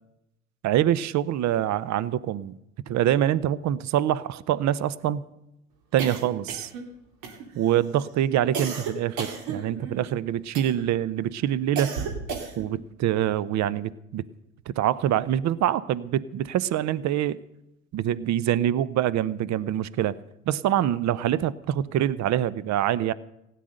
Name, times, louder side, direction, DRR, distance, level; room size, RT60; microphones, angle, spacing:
voice 1, 0.6-2.5 2.9-5.2 5.9-6.7 7.6-12.0 12.6-14.2 14.7-17.4 17.9-20.1 20.5-23.1, right 11 dB, 45° right, 19 dB, 0.7 m, -25 dB
sound 1, 6.0-6.9 7.2-7.7 8.5-10.0 10.5-11.0 11.8-12.8, right 5 dB, 65° right, 2.5 m, -34 dB
16.5 x 9.4 x 6.4 m, 0.86 s
hypercardioid pair, 65°, 38 cm